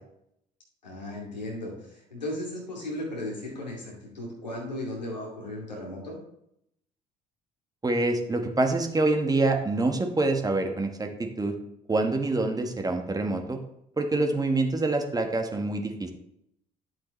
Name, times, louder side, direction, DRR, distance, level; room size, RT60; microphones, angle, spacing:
voice 1, 0.8-6.2, left 1 dB, 85° left, -3 dB, 2.5 m, -36 dB
voice 2, 7.8-11.6 11.9-13.6 14.0-16.1, right 2 dB, 15° right, 4 dB, 1.5 m, -26 dB
11.5 x 7.7 x 3.3 m, 0.76 s
figure-of-eight pair, 55°, 21 cm